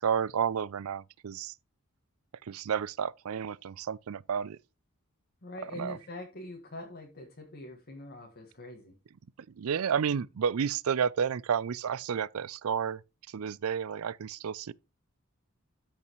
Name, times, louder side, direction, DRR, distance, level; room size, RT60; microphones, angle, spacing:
voice 1, 0.0-1.5 2.4-4.6 5.6-6.0 9.5-13.0 13.3-14.7, right 7 dB, 70° right, 0.4 m, -31 dB
voice 2, 5.4-8.9, left 2 dB, 50° left, 1.7 m, -44 dB
13.5 x 5.5 x 3.1 m
head